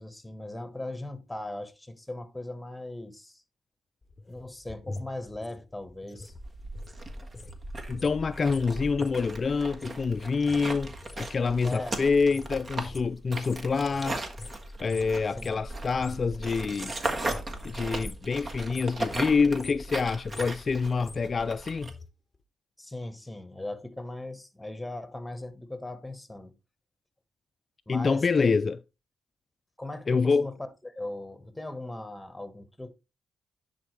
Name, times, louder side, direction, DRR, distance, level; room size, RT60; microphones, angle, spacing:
voice 1, 0.0-3.4 4.3-6.3 11.6-12.0 15.4-15.6 22.8-26.5 27.9-28.6 29.8-32.9, left 2 dB, 10° left, 1.3 m, -39 dB
sound 1, 4.0-7.6 7.8-16.3 16.6-17.7 17.9-18.3 18.6-19.0 19.4-22.1 22.3-22.4, left 2 dB, 30° left, 0.7 m, -45 dB
sound 2, 6.3-21.9, right 2 dB, 45° right, 1.5 m, -37 dB
voice 2, 7.9-14.2 14.8-16.9 17.6-21.9 27.9-28.8 30.1-30.5, left 4 dB, 45° left, 0.3 m, -26 dB
10.0 x 4.2 x 3.2 m
cardioid pair, 65°, 0 cm